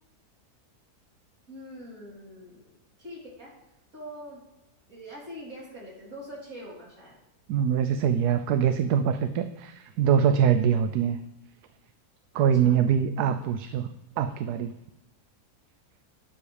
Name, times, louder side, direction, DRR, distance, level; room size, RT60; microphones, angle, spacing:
voice 1, 1.5-2.7 3.0-3.5 3.9-4.4 4.9-7.2 12.3-12.8, equal, 55° right, -6 dB, 4.0 m, -43 dB
voice 2, 7.5-11.2 12.3-13.9 14.2-14.7, right 8 dB, 75° right, 9 dB, 1.1 m, -23 dB
12.0 x 8.5 x 3.3 m, 0.98 s
omnidirectional pair, 1.8 m